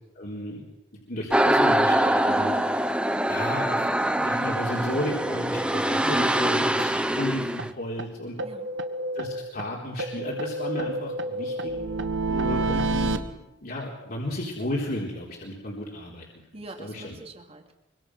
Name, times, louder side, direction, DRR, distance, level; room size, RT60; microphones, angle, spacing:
voice 1, 0.1-0.7 1.1-2.5 3.3-8.4 9.1-11.7 12.3-16.2 16.8-17.2, left 1 dB, 55° left, -3 dB, 4.1 m, -33 dB
sound 1, 1.3-7.7, right 1 dB, 5° right, 1.0 m, -24 dB
sound 2, 6.8-6.9 7.2-7.3 7.6-7.7 8.0-8.1 8.4-9.7 10.0-13.2, right 2 dB, 80° right, 1.7 m, -29 dB
voice 2, 16.5-17.7, right 1 dB, 35° right, 5 dB, 2.9 m, -42 dB
24.5 x 24.0 x 6.3 m, 0.91 s
head